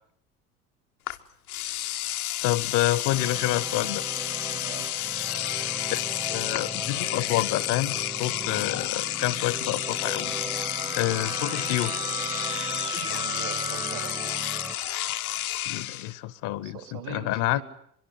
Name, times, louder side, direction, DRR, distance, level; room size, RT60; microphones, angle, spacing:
Engine / Domestic sounds home sounds, 1.1-1.2 1.5-16.1, left 13 dB, 70° left, 1.0 m, -31 dB
voice 1, 2.4-4.0 5.9-6.0 6.3-10.4 10.9-11.9 15.6-17.6, left 16 dB, 45° left, 20 dB, 1.0 m, -28 dB
sound 1, 3.1-14.8, right 2 dB, 10° right, 0.9 m, -39 dB
voice 2, 4.5-5.1 13.1-14.1 16.6-17.6, right 10 dB, 65° right, 9 dB, 3.2 m, -42 dB
Keyboard (musical), 9.0-15.6, right 5 dB, 85° right, 1.3 m, -38 dB
23.0 x 23.0 x 8.2 m, 0.68 s
figure-of-eight pair, 70°, 45 cm